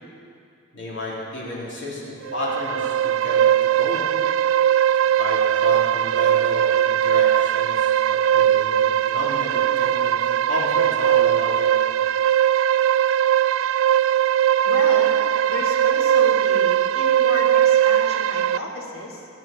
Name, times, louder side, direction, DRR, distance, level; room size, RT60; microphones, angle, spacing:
voice 1, 0.7-3.4 3.7-4.1 5.2-8.8 9.1-11.7, left 1 dB, 60° left, -6 dB, 3.4 m, -32 dB
sound 1, 2.3-18.6, right 10 dB, 75° right, 0.3 m, -19 dB
voice 2, 14.6-15.2 15.5-19.3, left 2 dB, 80° left, -3 dB, 2.8 m, -32 dB
16.5 x 7.6 x 6.9 m, 2.5 s
head